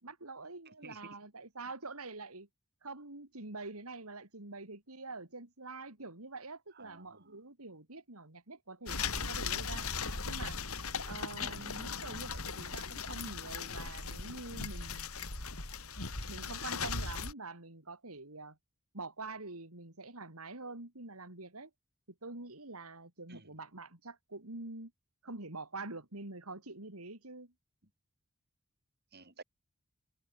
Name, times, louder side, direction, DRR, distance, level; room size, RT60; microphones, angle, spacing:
voice 1, 0.0-2.5 2.8-9.9 10.2-10.6 11.1-15.2 16.3-18.6 18.9-21.7 22.2-24.9 25.2-27.5, right 3 dB, 90° right, 4.0 m, -46 dB
voice 2, 0.8-1.2 6.7-7.4 11.4-11.8 23.3-23.5 29.1-29.4, right 3 dB, 50° right, 6.1 m, -52 dB
sound 1, 8.9-17.3, left 5 dB, 90° left, 7.5 m, -38 dB
head